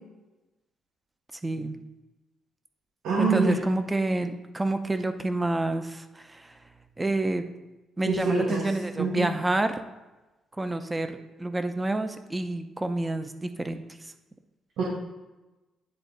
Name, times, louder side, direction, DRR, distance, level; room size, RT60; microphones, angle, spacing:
voice 1, 1.4-1.8 3.2-6.6 7.0-7.4 8.0-9.8 10.6-14.1, right 2 dB, 15° right, 8 dB, 0.7 m, -28 dB
voice 2, 3.0-3.6 8.0-8.7 9.0-9.3 14.8-14.9, right 4 dB, 85° right, -4 dB, 1.5 m, -25 dB
9.8 x 3.6 x 4.0 m, 1.1 s
cardioid pair, 90°, 0 cm